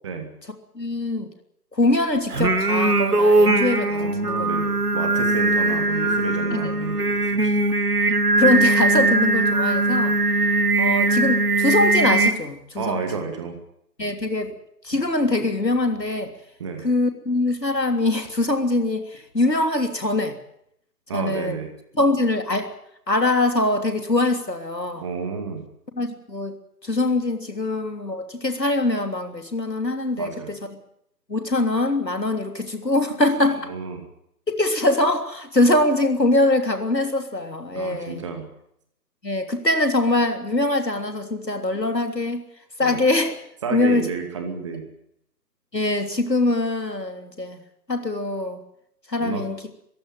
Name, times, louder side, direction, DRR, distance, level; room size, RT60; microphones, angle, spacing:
voice 1, 0.7-1.3 1.7-4.5 6.5-6.7 8.4-10.2 10.8-13.0 14.0-14.5 14.8-16.3 16.8-20.4 21.1-21.6 21.9-22.7 23.1-25.0 25.9-26.5 26.8-30.6 31.3-33.6 34.5-38.2 39.2-42.4 42.8-43.3 43.7-44.1 45.7-47.6 47.9-48.6 49.1-49.6, left 2 dB, 90° left, 6 dB, 3.4 m, -23 dB
Singing, 2.3-12.3, right 2 dB, 65° right, 2.2 m, -20 dB
voice 2, 4.0-7.6 12.8-13.6 14.9-15.0 16.6-16.9 21.1-21.7 25.0-25.6 30.2-30.5 33.5-34.0 37.7-38.5 42.8-43.0 43.6-44.9 49.2-49.4, right 5 dB, 20° right, 5 dB, 2.5 m, -31 dB
23.0 x 15.5 x 9.3 m, 0.74 s
figure-of-eight pair, 155°, 48 cm